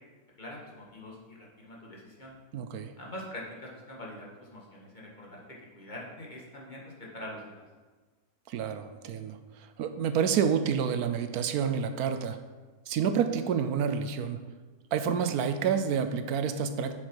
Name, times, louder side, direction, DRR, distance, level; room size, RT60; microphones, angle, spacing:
voice 1, 0.4-2.3 3.0-5.4 5.7-7.6, left 1 dB, 30° left, -3 dB, 1.9 m, -44 dB
voice 2, 2.5-2.9 8.5-12.4 12.9-14.4 14.9-17.0, right 7 dB, 85° right, 9 dB, 1.2 m, -29 dB
7.6 x 7.4 x 4.8 m, 1.3 s
omnidirectional pair, 1.6 m